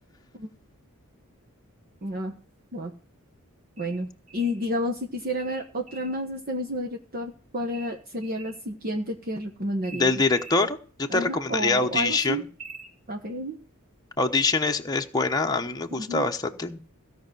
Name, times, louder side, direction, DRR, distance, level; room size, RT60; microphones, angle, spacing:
voice 1, 2.0-2.3 2.7-2.9 3.8-10.1 11.1-12.4 13.1-13.6 15.9-16.2, equal, 45° right, 3 dB, 1.3 m, -31 dB
sound 1, 3.8-4.6 5.4-6.2 7.7-8.6 9.8-10.6 12.0-12.9, right 3 dB, 85° right, 4.1 m, -45 dB
voice 2, 9.9-12.4 14.2-16.8, left 3 dB, 15° left, 3 dB, 1.0 m, -24 dB
16.5 x 5.6 x 7.9 m, 0.40 s
head